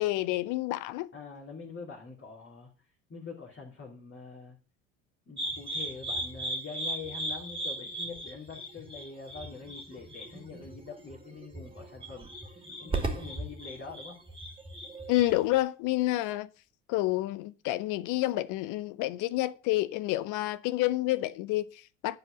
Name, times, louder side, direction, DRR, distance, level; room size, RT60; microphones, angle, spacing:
voice 1, 0.0-1.1 15.1-16.5 16.9-22.2, left 17 dB, 55° left, 0.6 m, -29 dB
voice 2, 1.1-2.7 3.1-4.6 5.3-12.3 12.8-14.2, left 4 dB, 30° left, 2.8 m, -44 dB
sound 1, 5.4-15.6, right 1 dB, 15° right, 2.8 m, -37 dB
11.0 x 4.9 x 7.8 m
figure-of-eight pair, 60°, 38 cm